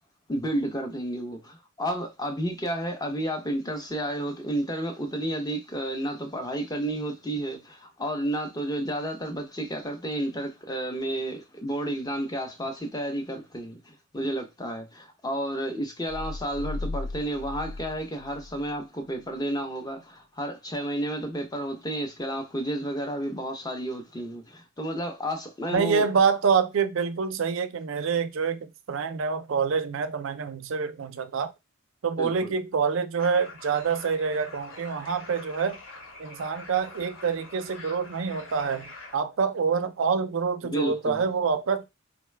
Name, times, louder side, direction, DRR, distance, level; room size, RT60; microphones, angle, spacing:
voice 1, 0.3-26.1 32.2-32.5 40.6-41.2, right 1 dB, 20° left, 0.7 m, -31 dB
sound 1, 16.1-18.8, left 2 dB, 90° left, 0.4 m, -36 dB
voice 2, 25.7-31.5 32.0-35.8 36.2-41.9, right 5 dB, 70° right, 0.4 m, -26 dB
sound 2, 33.2-39.2, left 3 dB, 65° left, 1.1 m, -45 dB
3.9 x 2.2 x 3.2 m
head